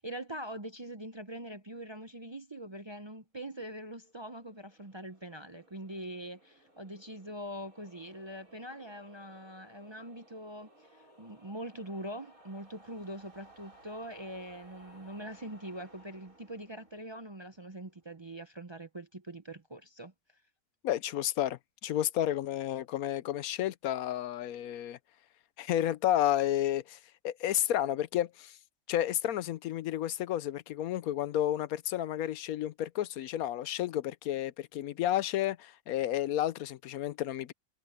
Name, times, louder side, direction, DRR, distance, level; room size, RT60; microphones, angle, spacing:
voice 1, 0.0-20.1, right 1 dB, 25° right, 0.6 m, -43 dB
sound 1, 3.8-18.1, right 1 dB, 75° right, 7.7 m, -60 dB
voice 2, 20.8-25.0 25.6-27.0 27.2-28.6 28.9-37.5, left 12 dB, 80° left, 1.1 m, -31 dB
omnidirectional pair, 1.5 m